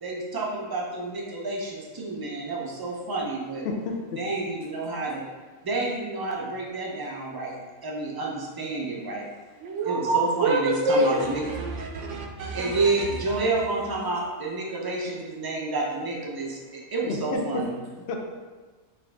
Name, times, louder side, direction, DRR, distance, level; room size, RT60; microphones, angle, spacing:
voice 1, 0.0-3.7 4.1-5.2 5.6-9.2 9.8-11.4 12.5-17.7, right 3 dB, 30° right, -2 dB, 0.4 m, -29 dB
voice 2, 3.6-4.2 17.0-17.7 18.1-18.4, left 3 dB, 60° left, 2 dB, 0.8 m, -30 dB
voice 3, 9.6-13.1, right 2 dB, 65° right, 0 dB, 1.0 m, -26 dB
5.6 x 2.5 x 3.4 m, 1.3 s
omnidirectional pair, 1.4 m